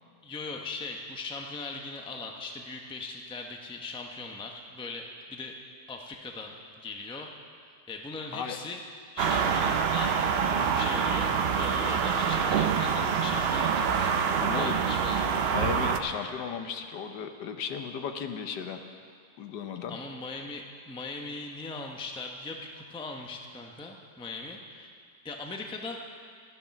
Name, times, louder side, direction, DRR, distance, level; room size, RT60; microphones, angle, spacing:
voice 1, 0.2-5.6 5.9-7.3 7.6-8.8 9.1-14.2 14.5-15.3 19.9-24.9 25.2-26.0, left 3 dB, 5° left, 2 dB, 0.5 m, -39 dB
sound 1, 9.2-16.0, right 6 dB, 65° right, 0.6 m, -26 dB
voice 2, 14.5-14.8 15.5-18.8 19.4-20.0, left 7 dB, 80° left, 7 dB, 1.5 m, -35 dB
13.5 x 11.0 x 5.9 m, 2.2 s
omnidirectional pair, 1.8 m